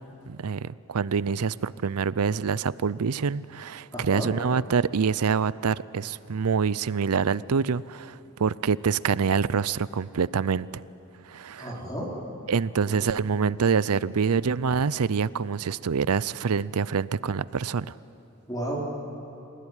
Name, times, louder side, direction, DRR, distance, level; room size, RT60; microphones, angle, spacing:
voice 1, 0.3-10.7 11.3-11.7 12.5-17.9, right 6 dB, 90° right, 19 dB, 0.5 m, -26 dB
voice 2, 3.9-4.3 11.6-12.1 12.8-13.1 18.5-18.9, right 1 dB, 15° left, -3 dB, 4.3 m, -32 dB
28.5 x 17.0 x 9.9 m, 2.9 s
head